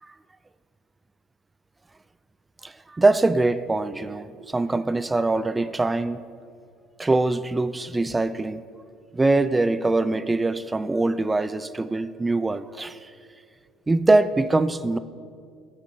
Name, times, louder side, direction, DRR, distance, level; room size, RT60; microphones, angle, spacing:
voice 1, 2.6-6.2 7.0-8.6 9.1-13.0 13.9-15.0, right 2 dB, 15° right, 15 dB, 0.3 m, -23 dB
14.0 x 8.6 x 3.8 m, 2.2 s
cardioid pair, 115°, 0 cm